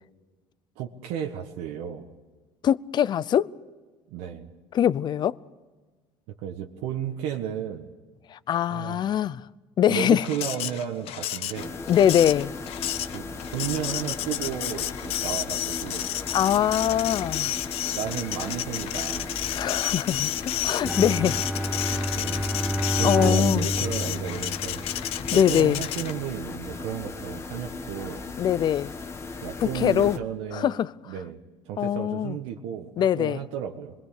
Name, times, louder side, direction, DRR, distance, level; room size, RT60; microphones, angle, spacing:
voice 1, 0.8-2.1 4.1-4.5 6.4-7.9 8.7-9.0 9.9-11.7 13.1-13.3 13.5-16.1 17.9-19.3 20.6-21.0 21.8-22.4 22.9-24.8 25.3-28.2 29.4-30.8 31.1-31.4 31.7-33.9, right 9 dB, 85° right, 1.6 m, -33 dB
voice 2, 2.6-3.5 4.7-5.3 8.3-9.4 9.8-10.2 11.9-12.5 16.3-17.5 19.5-20.3 20.6-21.4 21.7-22.1 23.0-23.7 25.3-25.8 28.4-28.9 29.6-30.2 30.5-30.9 31.8-32.4 33.0-33.4, left 10 dB, 40° left, 0.6 m, -23 dB
Printer, 10.2-26.3, left 13 dB, 65° left, 0.9 m, -31 dB
sound 1, 11.5-30.2, left 3 dB, 25° left, 1.5 m, -37 dB
Bowed string instrument, 20.8-25.2, equal, 5° right, 0.8 m, -28 dB
26.5 x 21.5 x 6.6 m
cardioid pair, 120°, 11 cm